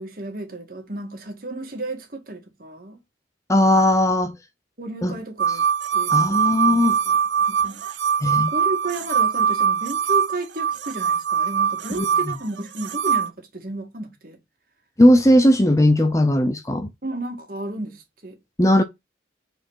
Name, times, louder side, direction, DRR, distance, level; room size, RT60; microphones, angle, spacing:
voice 1, 0.0-3.0 4.8-5.6 5.9-7.9 8.4-14.4 17.0-18.4, right 2 dB, 50° right, 2.2 m, -33 dB
voice 2, 3.5-4.3 5.0-5.1 6.1-7.0 8.2-8.5 11.9-12.0 15.0-16.9 18.6-18.8, left 1 dB, 15° left, 0.6 m, -17 dB
sound 1, 5.4-13.3, right 7 dB, 75° right, 0.8 m, -22 dB
5.3 x 4.4 x 5.6 m
head